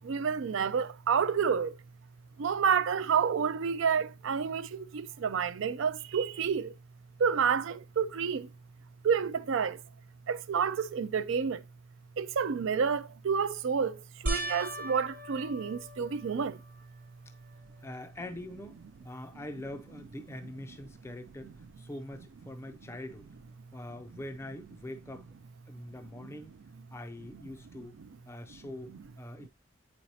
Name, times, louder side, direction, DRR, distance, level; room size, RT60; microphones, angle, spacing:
voice 1, 0.0-1.8 2.4-6.7 7.2-8.5 9.0-9.8 10.3-11.6 12.2-16.6 29.4-29.5, right 6 dB, 65° right, 0.4 m, -29 dB
sound 1, 14.3-16.9 17.5-18.0 18.4-18.5 21.7-21.8, right 1 dB, 40° right, 0.9 m, -38 dB
voice 2, 17.8-23.4 23.7-25.3 25.7-26.6 26.9-28.0 28.3-29.5, left 1 dB, 10° left, 0.4 m, -44 dB
8.5 x 4.4 x 2.7 m
head